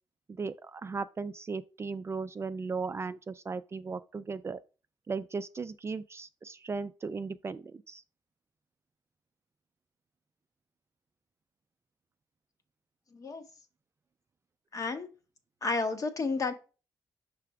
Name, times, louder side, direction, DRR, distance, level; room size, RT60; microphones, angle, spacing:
voice 1, 0.3-4.6 5.1-8.0, right 4 dB, 35° right, 0.3 m, -37 dB
voice 2, 13.1-13.4 14.7-15.1 15.6-16.5, left 3 dB, 45° left, 1.0 m, -31 dB
5.9 x 3.4 x 4.8 m
cardioid pair, 85°, 8 cm